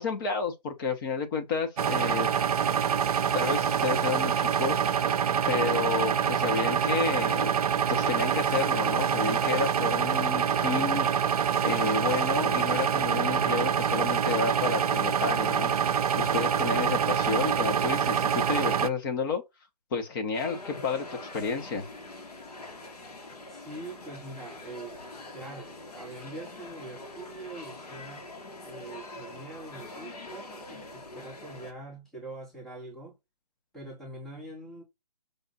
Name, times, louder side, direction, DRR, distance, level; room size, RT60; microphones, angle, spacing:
voice 1, 0.0-2.3 3.3-5.1 5.5-7.5 7.9-11.3 11.6-19.4 19.9-21.9, left 5 dB, 30° left, 1.0 m, -31 dB
sound 1, 1.8-18.9, right 7 dB, 65° right, 0.5 m, -26 dB
sound 2, 20.3-31.7, left 2 dB, 75° left, 1.5 m, -44 dB
voice 2, 23.5-25.0 25.3-28.2 28.6-33.1 33.7-34.8, right 2 dB, ahead, 0.7 m, -43 dB
5.1 x 2.4 x 4.1 m
hypercardioid pair, 145°, 21 cm